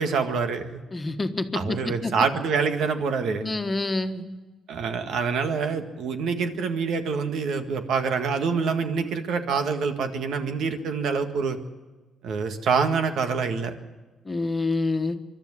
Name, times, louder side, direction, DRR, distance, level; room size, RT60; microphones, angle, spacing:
voice 1, 0.0-0.8 1.5-3.5 4.7-11.6 12.2-13.7, right 5 dB, 75° right, 7 dB, 1.7 m, -26 dB
voice 2, 0.9-2.1 3.4-4.2 14.2-15.2, left 2 dB, 25° left, 7 dB, 1.4 m, -27 dB
24.5 x 12.0 x 9.7 m, 1.2 s
cardioid pair, 90°, 0 cm